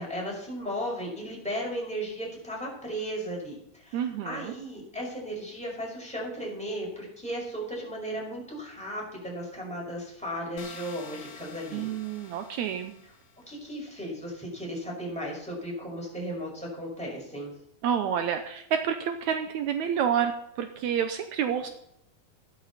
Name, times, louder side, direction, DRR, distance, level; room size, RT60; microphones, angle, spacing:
voice 1, 0.0-11.9 13.5-17.5, equal, ahead, -4 dB, 5.2 m, -35 dB
voice 2, 3.9-4.5 11.7-12.9 17.8-21.7, right 8 dB, 85° right, 7 dB, 1.6 m, -29 dB
sound 1, 10.6-13.5, left 5 dB, 60° left, 2.7 m, -48 dB
14.5 x 12.0 x 4.2 m, 0.77 s
omnidirectional pair, 4.3 m